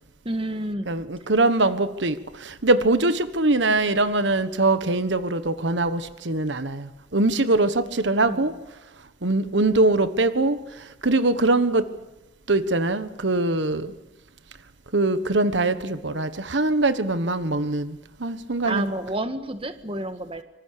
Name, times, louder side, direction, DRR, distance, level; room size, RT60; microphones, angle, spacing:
voice 1, 0.2-0.9 8.2-8.4 18.6-20.4, right 1 dB, 30° right, 9 dB, 1.5 m, -29 dB
voice 2, 0.9-8.5 9.2-10.6 11.0-11.9 12.5-13.9 14.9-18.8, right 2 dB, 70° right, 12 dB, 1.3 m, -22 dB
25.5 x 25.5 x 6.8 m, 0.99 s
head